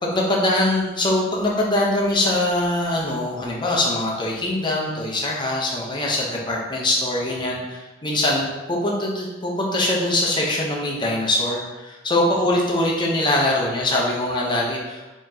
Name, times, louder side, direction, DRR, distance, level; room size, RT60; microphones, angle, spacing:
voice 1, 0.0-15.1, left 1 dB, 25° left, -3 dB, 0.7 m, -22 dB
4.2 x 3.0 x 2.7 m, 1.1 s
head